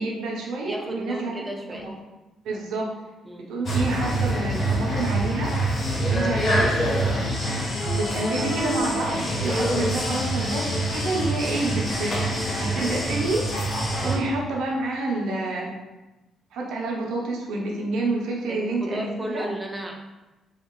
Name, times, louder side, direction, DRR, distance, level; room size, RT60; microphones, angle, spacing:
voice 1, 0.0-1.3 1.7-1.9 2.4-2.9 3.5-5.5 6.1-7.1 7.9-13.4 14.0-15.7 16.5-19.5, right 2 dB, 80° right, -2 dB, 0.7 m, -28 dB
voice 2, 0.6-1.9 3.2-3.5 6.0-6.3 14.0-14.2 18.5-19.9, right 1 dB, 10° right, 1 dB, 0.5 m, -34 dB
sound 1, 3.7-14.2, right 1 dB, 40° left, 0.7 m, -25 dB
3.5 x 2.4 x 2.9 m, 1.0 s
cardioid pair, 90°, 0 cm